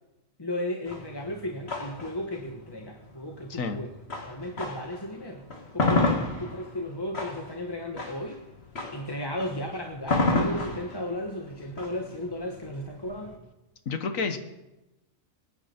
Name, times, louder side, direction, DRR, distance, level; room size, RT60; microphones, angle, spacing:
voice 1, 0.4-3.9 4.3-8.4 8.9-13.4, left 1 dB, 20° left, 2 dB, 1.0 m, -35 dB
sound 1, 0.9-5.0 5.4-13.3, left 2 dB, 45° left, 2.1 m, -30 dB
voice 2, 3.5-3.8 13.8-14.4, left 4 dB, 65° left, 9 dB, 1.5 m, -29 dB
24.5 x 9.9 x 4.3 m, 1.0 s
omnidirectional pair, 1.5 m